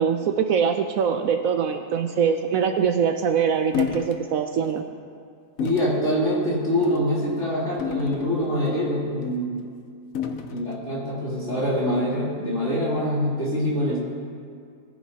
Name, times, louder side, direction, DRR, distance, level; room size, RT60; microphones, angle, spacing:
voice 1, 0.0-4.8, right 7 dB, 70° right, 6 dB, 0.9 m, -23 dB
sound 1, 3.7-4.2 4.6-4.8 5.6-6.0 6.7-7.0 7.8-8.7 10.1-10.7, left 8 dB, 65° left, 1.1 m, -30 dB
voice 2, 5.6-9.6 10.5-14.0, equal, 50° left, -8 dB, 3.6 m, -24 dB
19.0 x 10.0 x 2.8 m, 2.3 s
omnidirectional pair, 1.7 m